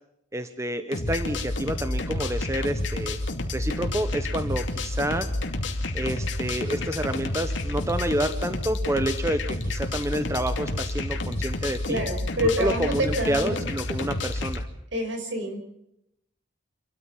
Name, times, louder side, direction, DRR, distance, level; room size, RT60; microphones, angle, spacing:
voice 1, 0.3-3.2 3.5-5.3 5.9-12.0 12.6-14.6, right 1 dB, 15° right, 9 dB, 1.1 m, -29 dB
sound 1, 0.9-14.6, left 2 dB, 75° left, 2.7 m, -30 dB
voice 2, 11.9-13.6 14.9-15.6, equal, 75° right, 5 dB, 5.7 m, -27 dB
27.5 x 13.5 x 7.4 m, 0.79 s
head